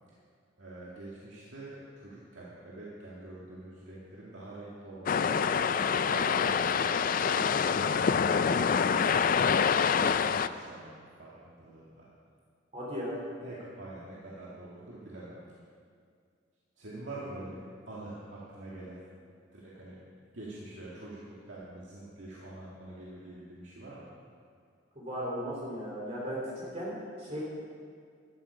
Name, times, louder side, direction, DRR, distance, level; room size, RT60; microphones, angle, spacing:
voice 1, 0.6-7.8 8.3-12.1 13.4-15.4 16.8-19.0 19.5-20.0 20.3-24.1, right 2 dB, 75° right, -7 dB, 2.2 m, -45 dB
sound 1, 5.1-10.5, left 6 dB, 45° left, 0.4 m, -26 dB
voice 2, 12.7-13.2 24.9-27.4, equal, 35° right, -5 dB, 3.0 m, -36 dB
14.0 x 13.0 x 5.1 m, 2.2 s
head